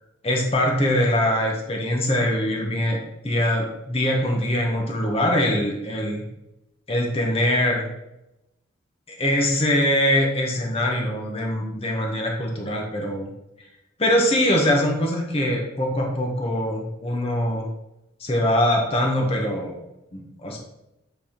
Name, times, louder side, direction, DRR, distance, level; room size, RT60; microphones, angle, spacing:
voice 1, 0.2-3.0 3.2-6.2 6.9-7.8 9.1-13.3 14.0-17.7 18.2-19.8 20.1-20.6, left 1 dB, 30° left, 0 dB, 1.1 m, -23 dB
7.9 x 3.5 x 4.4 m, 0.91 s
head